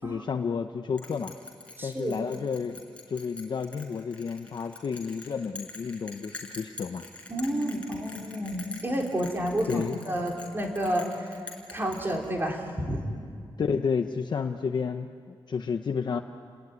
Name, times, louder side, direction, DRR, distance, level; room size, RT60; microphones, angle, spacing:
voice 1, 0.0-1.3 1.8-2.8 3.1-7.0 9.7-10.0 13.6-16.2, left 5 dB, 55° left, 6 dB, 0.9 m, -31 dB
Bell, 1.0-12.6, left 2 dB, 15° left, 4.9 m, -45 dB
voice 2, 1.8-2.2 7.3-11.1 11.7-13.0, right 1 dB, 25° right, 0 dB, 4.0 m, -30 dB
30.0 x 20.0 x 9.6 m, 2.2 s
wide cardioid pair, 145°, 9 cm